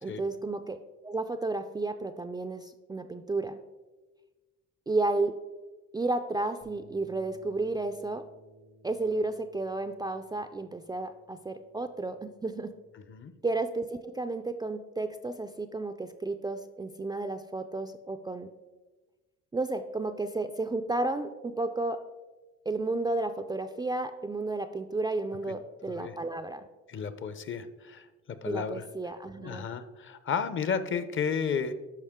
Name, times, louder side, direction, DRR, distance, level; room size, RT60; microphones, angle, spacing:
voice 1, 0.0-3.6 4.9-5.4 5.9-8.2 8.8-12.7 13.4-18.5 19.5-22.0 22.7-26.7 28.4-29.7, right 2 dB, 15° right, 7 dB, 0.3 m, -32 dB
sound 1, 6.6-12.9, left 1 dB, 75° left, 1.9 m, -58 dB
voice 2, 26.9-28.1 28.4-28.8 29.4-31.7, left 6 dB, 40° left, 12 dB, 0.7 m, -32 dB
12.0 x 5.1 x 3.6 m, 1.2 s
cardioid pair, 100°, 30 cm